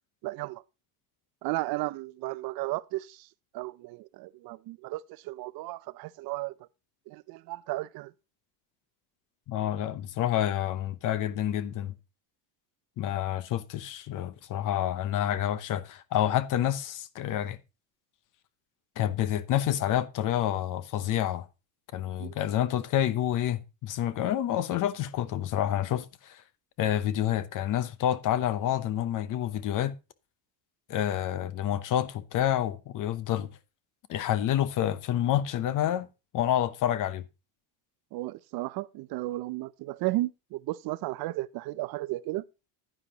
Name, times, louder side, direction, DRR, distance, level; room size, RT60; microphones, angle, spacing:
voice 1, 0.2-0.6 1.4-3.3 3.5-6.5 7.1-8.1 22.2-22.4 38.1-42.4, right 19 dB, 60° right, 0.5 m, -34 dB
voice 2, 9.5-11.9 13.0-17.6 19.0-21.5 21.9-26.4 26.8-29.9 30.9-33.5 34.1-36.1 36.3-37.2, left 11 dB, 50° left, 0.8 m, -28 dB
9.9 x 9.8 x 2.9 m
cardioid pair, 155°, 42 cm